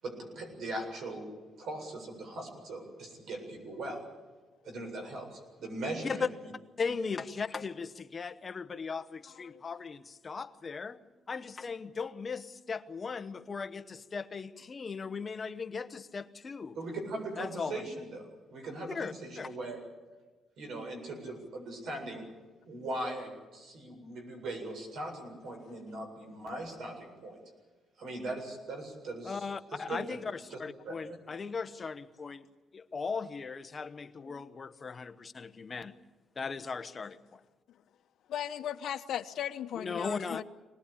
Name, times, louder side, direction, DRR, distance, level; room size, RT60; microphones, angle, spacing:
voice 1, 0.0-1.3 1.6-4.0 4.6-6.2 16.7-19.8 20.6-22.3 22.7-27.4 28.0-30.0 30.5-30.6 30.8-30.9, right 2 dB, 70° right, 7.6 m, -40 dB
voice 2, 6.8-16.8 17.4-17.9 18.9-19.5 29.2-32.5 32.7-36.0 36.4-37.4 39.8-40.4, left 5 dB, 30° left, 1.0 m, -38 dB
voice 3, 38.3-40.4, left 10 dB, 70° left, 1.1 m, -36 dB
26.0 x 19.5 x 8.6 m
cardioid pair, 145°, 0 cm